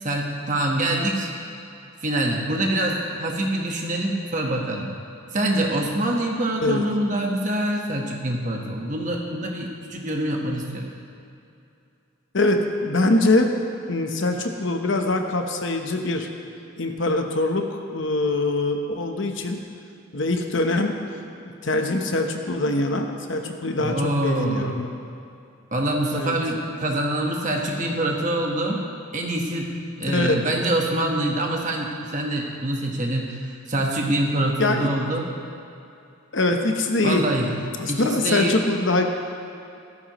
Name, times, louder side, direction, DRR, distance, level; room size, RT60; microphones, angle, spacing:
voice 1, 0.0-1.3 2.0-4.9 5.3-10.9 23.8-24.8 25.7-28.8 29.1-29.7 30.0-33.4 33.7-35.3 37.0-37.5 37.9-38.6, right 1 dB, 35° right, 0 dB, 1.4 m, -25 dB
voice 2, 12.3-13.5 13.9-16.3 16.8-19.6 20.1-20.9 21.6-24.9 26.1-26.4 30.1-30.4 34.6-34.9 36.3-37.2 37.8-39.0, left 2 dB, 60° left, 4 dB, 1.0 m, -23 dB
16.0 x 14.0 x 3.1 m, 2.6 s
head